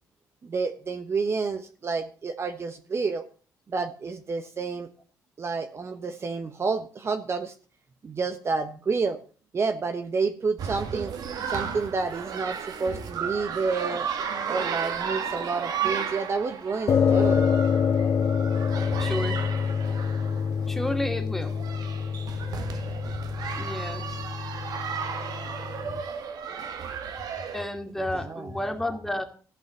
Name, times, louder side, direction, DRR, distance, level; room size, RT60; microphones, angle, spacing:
voice 1, 0.4-3.2 3.7-4.9 5.4-7.5 8.0-9.2 9.5-11.1 11.5-14.1 14.5-17.5 28.1-28.5, right 4 dB, 40° right, 8 dB, 1.1 m, -29 dB
sound 1, 10.6-27.6, right 7 dB, 70° right, 1.8 m, -34 dB
sound 2, 16.9-26.0, left 6 dB, 45° left, 0.6 m, -26 dB
voice 2, 19.0-19.4 20.7-21.5 23.6-24.2 27.5-29.2, left 1 dB, 5° left, 5 dB, 2.4 m, -31 dB
15.0 x 5.5 x 8.5 m, 0.40 s
cardioid pair, 85°, 7 cm